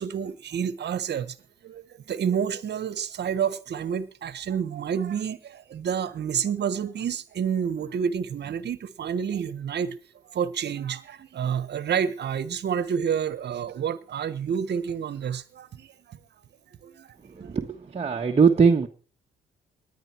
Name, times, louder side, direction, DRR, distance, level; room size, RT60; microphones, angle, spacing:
voice 1, 0.0-1.4 1.6-1.8 2.1-10.0 10.3-16.2 16.8-17.1 17.4-17.5, right 7 dB, 60° right, 1.3 m, -29 dB
voice 2, 17.2-18.9, right 5 dB, 30° right, 1.4 m, -21 dB
19.0 x 11.0 x 4.6 m
cardioid pair, 90°, 20 cm